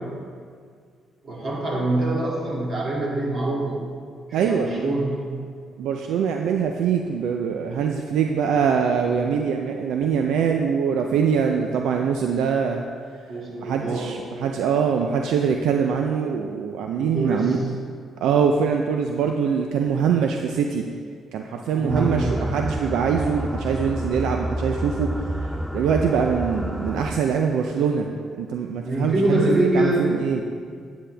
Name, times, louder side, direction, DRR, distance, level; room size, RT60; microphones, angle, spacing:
voice 1, 1.2-3.8 4.3-5.1 13.3-14.1 17.0-17.6 21.7-22.5 28.8-30.1, right 1 dB, 50° right, -4 dB, 2.6 m, -24 dB
voice 2, 4.3-5.0 5.8-12.9 13.6-17.6 18.2-20.8 21.3-25.1 25.4-30.4, right 6 dB, 85° right, 3 dB, 0.5 m, -23 dB
sound 1, 21.9-27.2, equal, ahead, 0.4 m, -29 dB
9.7 x 8.5 x 3.4 m, 2.1 s
cardioid pair, 90°, 0 cm